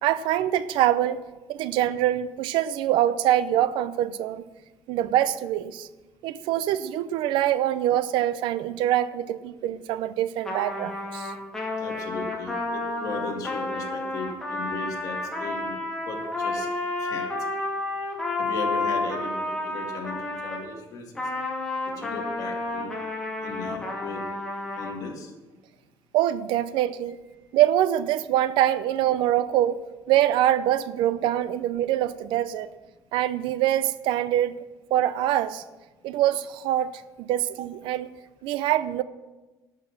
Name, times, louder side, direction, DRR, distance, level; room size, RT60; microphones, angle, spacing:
voice 1, 0.0-1.2 1.5-4.4 4.9-5.9 6.2-11.3 26.1-27.2 27.5-29.8 30.1-32.7 33.1-34.5 34.9-35.6 36.0-36.9 37.2-38.1 38.4-39.0, right 12 dB, 85° right, 0.6 m, -24 dB
Trumpet, 10.4-20.7 21.2-24.9, left 2 dB, 5° left, 1.8 m, -31 dB
voice 2, 11.8-15.8 16.1-17.3 18.4-21.2 21.9-22.9 23.4-24.2 24.8-25.3, left 4 dB, 45° left, 2.2 m, -37 dB
12.0 x 6.7 x 7.4 m
cardioid pair, 170°, 8 cm